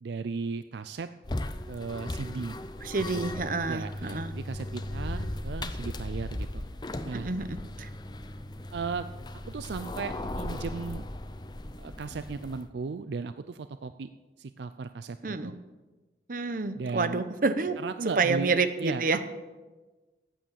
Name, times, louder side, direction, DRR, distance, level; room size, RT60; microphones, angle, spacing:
voice 1, 0.0-1.1 1.7-2.6 3.1-3.2 3.7-6.6 7.0-7.3 8.7-9.1 9.5-11.1 11.8-14.1 14.4-15.6 16.7-17.2 17.8-18.5 18.8-19.2, right 4 dB, 75° right, 11 dB, 0.4 m, -36 dB
sound 1, 1.2-12.7, left 1 dB, 25° left, 0.6 m, -37 dB
voice 2, 2.8-4.3 7.1-7.9 15.2-15.5 16.3-17.8 18.2-19.2, right 3 dB, 50° right, 10 dB, 0.9 m, -28 dB
14.0 x 8.7 x 7.4 m, 1.2 s
head